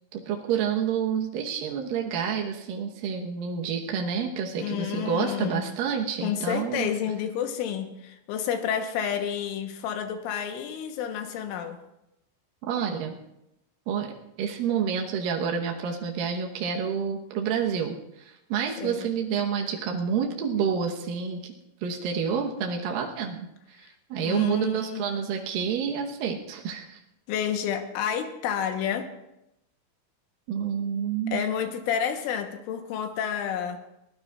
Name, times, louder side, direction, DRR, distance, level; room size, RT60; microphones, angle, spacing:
voice 1, 0.1-6.9 12.7-13.1 13.9-21.5 21.8-23.4 23.7-27.0 30.5-31.4, right 7 dB, 80° right, 1 dB, 2.0 m, -29 dB
voice 2, 4.6-5.7 6.2-11.8 18.8-19.1 24.2-25.0 27.3-29.1 31.3-33.8, left 8 dB, 80° left, 6 dB, 3.5 m, -30 dB
23.0 x 18.0 x 2.4 m, 0.85 s
omnidirectional pair, 5.8 m